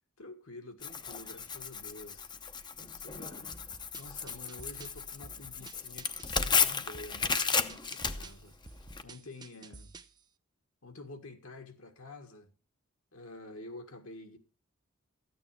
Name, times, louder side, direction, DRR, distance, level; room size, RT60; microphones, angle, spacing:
voice 1, 0.2-2.3 2.8-3.5 3.9-9.9 10.8-12.5 13.1-14.4, left 2 dB, 70° left, 1.8 m, -49 dB
Tearing, 0.8-9.0, left 6 dB, 20° left, 0.7 m, -34 dB
sound 1, 3.5-10.2, right 3 dB, 20° right, 0.6 m, -52 dB
14.0 x 9.0 x 4.9 m
head